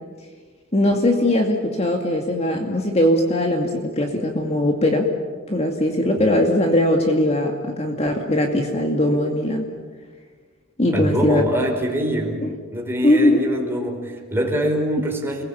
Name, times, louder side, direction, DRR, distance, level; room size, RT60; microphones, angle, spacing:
voice 1, 0.7-5.1 5.5-9.7 10.8-11.4 12.4-12.5 13.0-13.4, left 1 dB, 30° left, 2 dB, 2.4 m, -20 dB
voice 2, 10.9-12.4 12.7-15.4, equal, 10° right, 1 dB, 4.7 m, -24 dB
29.5 x 21.0 x 8.7 m, 1.5 s
head